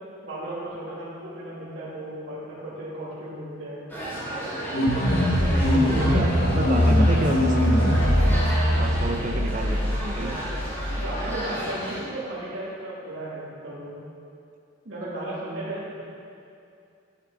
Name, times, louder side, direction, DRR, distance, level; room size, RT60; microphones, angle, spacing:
voice 1, 0.2-3.8 5.8-6.5 10.2-10.3 10.9-14.0 14.8-16.0, right 1 dB, 65° right, -9 dB, 1.9 m, -35 dB
sound 1, 3.9-12.0, right 1 dB, 10° left, 1.7 m, -34 dB
sound 2, 4.7-11.4, left 1 dB, 45° left, 0.7 m, -22 dB
voice 2, 5.2-8.5 8.8-10.4, right 2 dB, 35° right, 6 dB, 0.4 m, -30 dB
11.0 x 7.0 x 3.4 m, 2.5 s
head